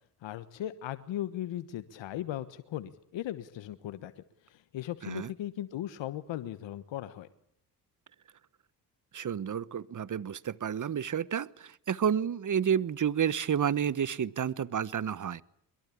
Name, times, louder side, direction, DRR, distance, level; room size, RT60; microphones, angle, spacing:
voice 1, 0.2-4.1 4.4-7.3, left 12 dB, 70° left, 12 dB, 1.4 m, -37 dB
voice 2, 9.1-15.4, right 8 dB, 40° right, 20 dB, 1.2 m, -30 dB
22.5 x 22.5 x 8.6 m, 0.75 s
hypercardioid pair, 50°, 46 cm